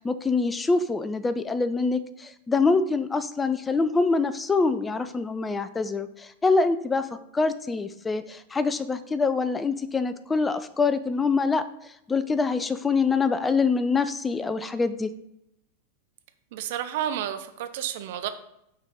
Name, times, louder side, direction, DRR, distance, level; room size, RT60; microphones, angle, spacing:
voice 1, 0.0-7.1 7.3-15.1, left 4 dB, 15° left, 12 dB, 0.4 m, -25 dB
voice 2, 16.5-18.3, right 10 dB, 50° right, 10 dB, 0.5 m, -31 dB
6.8 x 4.1 x 3.8 m, 0.81 s
figure-of-eight pair, 90°, 0 cm